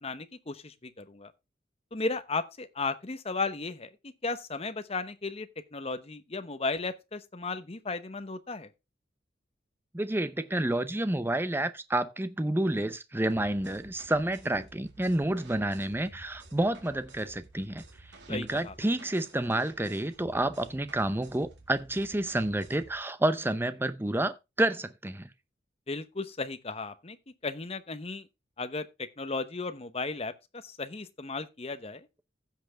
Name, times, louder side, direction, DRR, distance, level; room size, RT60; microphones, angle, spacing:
voice 1, 0.0-1.3 1.9-8.7 18.3-18.7 25.9-27.2 27.4-28.3 28.6-28.9 29.2-30.3 30.6-32.1, left 3 dB, 35° left, 0.9 m, -35 dB
voice 2, 9.9-17.8 18.3-25.3, right 1 dB, 10° right, 0.6 m, -29 dB
sound 1, 13.3-23.0, right 2 dB, 70° right, 2.1 m, -53 dB
15.5 x 5.8 x 3.5 m
head